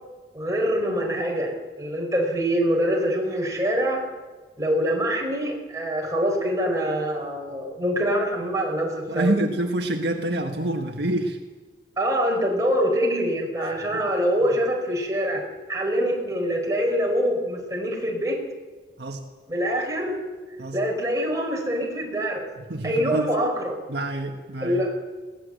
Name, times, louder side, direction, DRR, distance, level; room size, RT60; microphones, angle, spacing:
voice 1, 0.3-4.0 4.6-9.3 12.0-15.4 15.7-18.4 19.5-20.2 20.7-22.4 22.8-23.8 24.6-24.9, equal, 20° right, 0 dB, 4.6 m, -24 dB
voice 2, 9.1-11.4 13.9-14.0 19.0-19.2 20.6-20.8 22.6-23.3 23.9-24.8, right 1 dB, 70° right, 3 dB, 1.7 m, -27 dB
21.5 x 17.5 x 7.8 m, 1.3 s
head